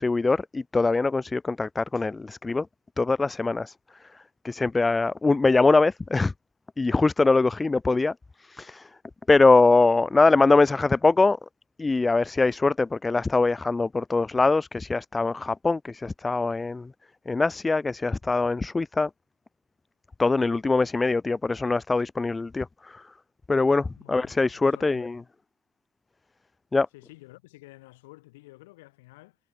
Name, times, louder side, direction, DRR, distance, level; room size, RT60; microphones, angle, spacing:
voice 1, 0.0-2.7 3.0-3.7 4.4-6.3 6.8-8.1 8.4-8.9 9.3-11.4 11.8-16.9 17.3-19.1 20.2-23.0 23.5-25.2 26.7-26.9, left 3 dB, 25° left, 0.6 m, -22 dB
voice 2, 24.0-25.2 26.9-29.4, left 21 dB, 85° left, 6.8 m, -51 dB
hypercardioid pair, 50°, 0 cm